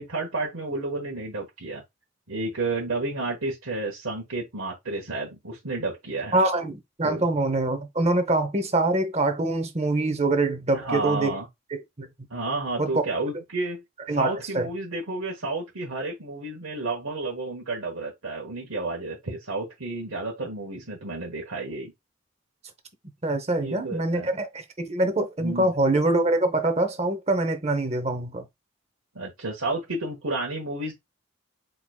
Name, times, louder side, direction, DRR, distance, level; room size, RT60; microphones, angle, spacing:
voice 1, 0.0-1.8 2.3-6.4 7.0-7.3 10.7-11.5 12.3-13.8 14.1-21.9 23.5-24.3 25.4-25.7 29.1-30.9, right 2 dB, 85° right, 1.3 m, -31 dB
voice 2, 6.3-11.4 11.7-12.1 12.8-13.0 14.1-14.7 23.2-28.4, right 2 dB, 30° right, 0.8 m, -24 dB
4.5 x 3.9 x 2.3 m
head